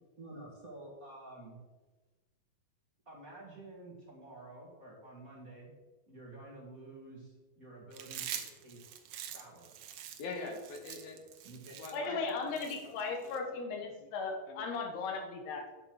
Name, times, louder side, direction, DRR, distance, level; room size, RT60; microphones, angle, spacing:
voice 1, 0.2-1.6 3.0-5.7 6.1-9.7 11.4-11.8, right 2 dB, 40° right, -3 dB, 1.3 m, -50 dB
Chewing mastication, 7.9-13.4, right 10 dB, 70° right, 1.9 m, -45 dB
voice 2, 10.2-11.2 11.8-12.3 12.6-13.6 14.0-14.1 14.5-14.7, left 3 dB, 70° left, 3 dB, 3.0 m, -44 dB
voice 3, 11.9-15.6, left 4 dB, 90° left, 3 dB, 3.5 m, -37 dB
10.5 x 6.9 x 6.1 m, 1.2 s
omnidirectional pair, 4.5 m